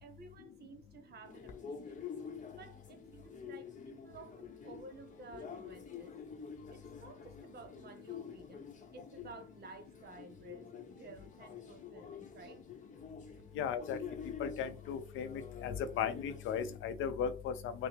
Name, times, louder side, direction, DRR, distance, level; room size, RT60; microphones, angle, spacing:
voice 1, 0.0-2.1 2.5-6.1 6.7-12.6, right 3 dB, 55° right, 0.9 m, -54 dB
sound 1, 1.2-16.8, left 6 dB, 40° left, 0.8 m, -48 dB
voice 2, 13.6-14.0 14.4-15.3 15.6-17.7, left 7 dB, 85° left, 0.5 m, -36 dB
5.7 x 2.0 x 3.3 m
cardioid pair, 90°, 20 cm